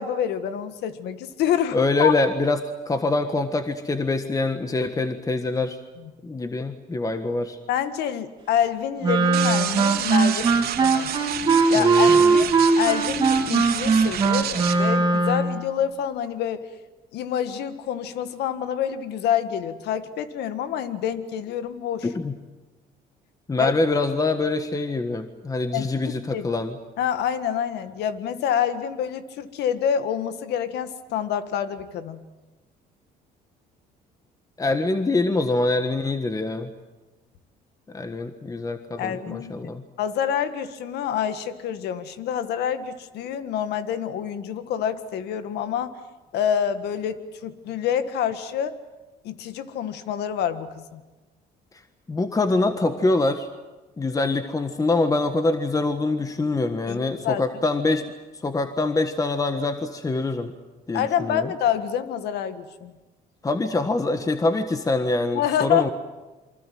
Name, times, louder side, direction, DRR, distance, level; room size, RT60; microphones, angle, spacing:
voice 1, 0.0-2.1 6.0-6.1 7.7-10.5 10.8-11.1 11.7-16.6 17.1-22.1 23.6-23.7 25.7-25.9 26.3-26.4 27.0-32.2 39.0-39.7 40.0-45.9 46.3-48.8 49.2-51.0 56.9-57.4 60.9-62.9 65.3-65.9, left 9 dB, 80° left, 11 dB, 1.8 m, -27 dB
voice 2, 1.7-2.6 2.9-5.8 6.2-7.6 11.7-12.4 22.0-22.4 23.5-26.8 34.6-36.7 37.9-39.8 52.1-53.5 54.0-58.1 58.4-60.5 60.9-61.5 63.4-65.9, left 2 dB, 20° left, 8 dB, 1.6 m, -24 dB
Wind instrument woodwind instrument, 9.0-15.6, right 4 dB, 25° right, 3.4 m, -20 dB
sound 1, 9.3-14.8, right 10 dB, 70° right, 2.8 m, -30 dB
28.0 x 24.5 x 7.8 m, 1.2 s
cardioid pair, 110°, 17 cm